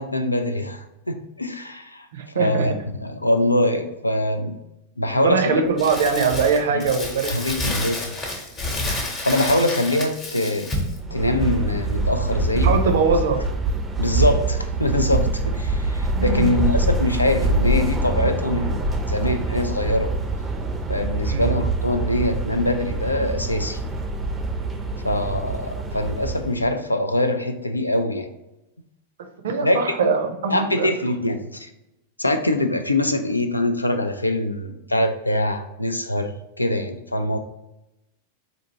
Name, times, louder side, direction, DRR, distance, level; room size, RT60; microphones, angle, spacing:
voice 1, 0.0-2.1 2.3-2.7 3.0-4.6 5.0-5.6 6.7-6.8 7.3-8.1 8.8-10.7 11.1-13.0 14.0-20.1 20.9-23.8 25.0-28.3 29.6-30.1 30.5-31.7 32.2-37.4, left 1 dB, 85° left, 7 dB, 0.4 m, -23 dB
voice 2, 2.1-2.7 5.1-7.4 12.6-13.4 16.1-16.5 21.2-21.5 29.2-30.9, right 5 dB, 60° right, 5 dB, 0.5 m, -22 dB
Crumpling crinkling, 5.8-11.0, left 2 dB, 25° left, 0.9 m, -29 dB
sound 1, 11.0-26.7, right 2 dB, 15° right, 0.5 m, -25 dB
4.3 x 2.6 x 2.8 m, 0.92 s
figure-of-eight pair, 90°, 0 cm